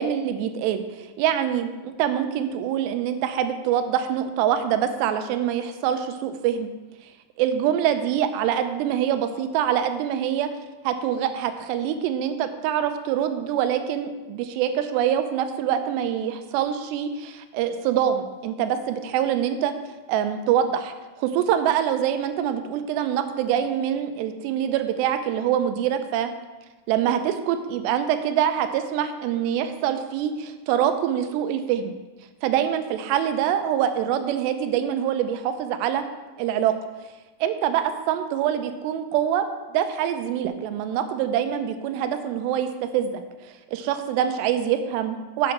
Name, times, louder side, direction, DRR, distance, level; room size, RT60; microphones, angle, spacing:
voice 1, 0.0-6.7 7.4-10.5 10.8-19.7 20.1-26.3 26.9-31.9 32.4-36.0 36.4-36.7 37.4-43.2 43.7-45.5, right 9 dB, 85° right, 9 dB, 2.8 m, -25 dB
6.4 x 6.0 x 5.9 m, 1.2 s
omnidirectional pair, 4.8 m